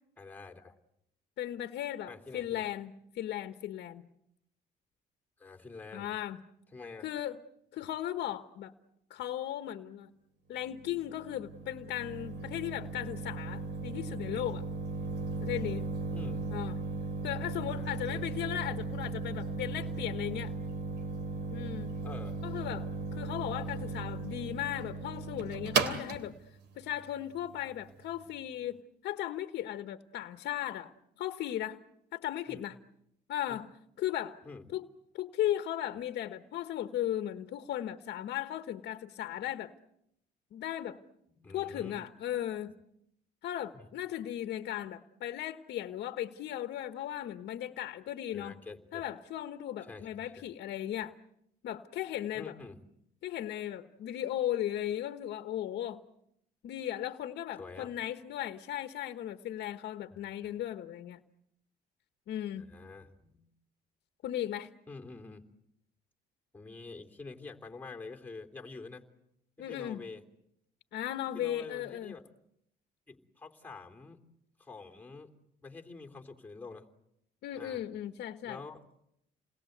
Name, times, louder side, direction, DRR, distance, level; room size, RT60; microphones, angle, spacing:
voice 1, 0.2-0.7 2.1-2.6 5.4-6.1 6.7-7.1 16.1-16.5 17.7-18.2 22.0-22.4 32.5-32.6 33.5-33.6 34.4-34.7 41.3-42.0 43.7-43.9 48.3-49.0 49.8-50.4 52.3-52.9 57.6-57.9 60.1-60.2 62.7-63.5 64.9-65.4 66.5-69.0 69.6-70.2 71.3-72.2 73.1-74.2 74.6-75.3 75.6-76.9 77.6-77.8 78.4-78.8, left 3 dB, 10° left, 2 dB, 3.3 m, -47 dB
voice 2, 1.4-4.1 5.9-6.4 7.0-7.4 7.7-8.7 9.1-10.1 10.5-14.6 15.4-15.9 16.5-16.8 17.2-20.5 21.5-21.9 22.4-26.4 26.8-31.8 32.1-32.8 33.3-33.7 34.0-34.4 34.7-34.9 35.1-39.7 40.5-41.0 41.5-42.7 43.4-48.6 48.9-51.1 51.6-52.6 53.2-56.0 56.6-61.2 62.3-62.7 64.2-64.7 69.6-70.0 70.9-72.1 77.4-78.6, left 12 dB, 75° left, 8 dB, 1.3 m, -36 dB
sound 1, 10.7-28.3, right 3 dB, 85° right, 2.9 m, -37 dB
30.0 x 21.0 x 8.1 m, 0.80 s
cardioid pair, 105°, 17 cm